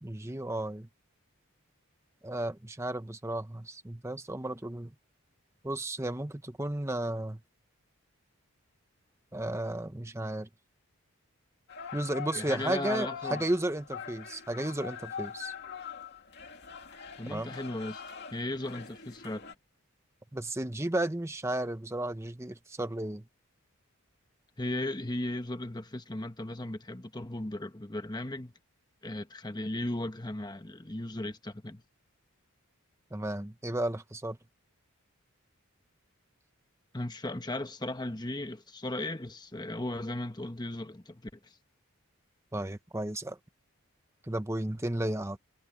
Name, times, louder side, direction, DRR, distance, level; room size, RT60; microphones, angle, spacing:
voice 1, 0.0-0.9 2.2-4.9 5.6-7.4 9.3-10.5 11.9-15.5 17.3-17.5 20.3-23.2 33.1-34.4 42.5-43.4 44.2-45.4, right 1 dB, 10° right, 0.8 m, -33 dB
sound 1, 11.7-19.5, left 7 dB, 50° left, 2.6 m, -43 dB
voice 2, 12.3-13.5 17.2-18.0 18.3-19.5 24.6-28.5 29.0-31.8 36.9-41.6, left 1 dB, 20° left, 1.1 m, -36 dB
head